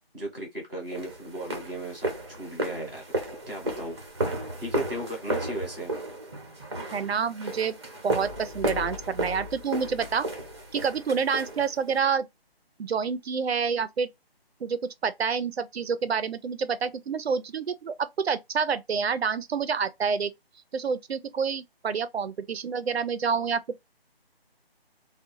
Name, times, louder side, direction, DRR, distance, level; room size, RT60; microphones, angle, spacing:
voice 1, 0.1-3.0 3.5-4.0 4.6-5.9, right 1 dB, 5° left, 0.8 m, -36 dB
sound 1, 0.9-12.0, right 1 dB, 25° right, 0.7 m, -34 dB
voice 2, 6.9-7.7 8.0-10.3 10.7-12.3 12.8-14.1 14.6-17.9 18.2-20.3 20.7-23.8, right 6 dB, 80° right, 0.5 m, -28 dB
sound 2, 8.2-10.8, left 8 dB, 70° left, 0.6 m, -43 dB
2.6 x 2.2 x 2.6 m
figure-of-eight pair, 160°, 31 cm